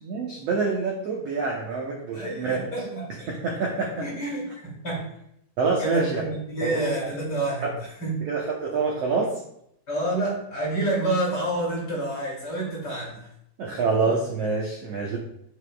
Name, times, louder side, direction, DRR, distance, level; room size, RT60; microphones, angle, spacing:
voice 1, 0.0-2.6 3.3-4.0 5.6-6.2 6.6-6.8 8.3-9.3 13.6-15.2, right 4 dB, 80° right, -2 dB, 1.4 m, -26 dB
voice 2, 2.1-3.3 4.0-5.0 5.8-7.7 8.0-8.2 9.9-13.2, right 1 dB, 30° left, -6 dB, 2.7 m, -28 dB
8.2 x 8.1 x 2.3 m, 0.74 s
omnidirectional pair, 4.4 m